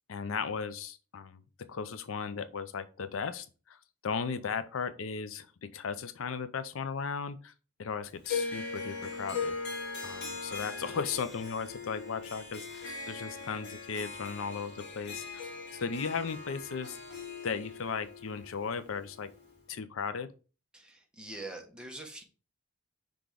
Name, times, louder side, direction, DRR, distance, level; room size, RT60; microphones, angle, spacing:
voice 1, 0.1-1.4 1.7-7.5 7.8-9.6 10.0-17.0 17.4-19.3 19.7-20.3, left 5 dB, 75° left, 0.5 m, -36 dB
Harp, 8.2-19.5, left 4 dB, 60° left, 2.1 m, -40 dB
voice 2, 20.7-22.2, right 2 dB, 5° right, 1.2 m, -44 dB
6.0 x 3.5 x 5.0 m
head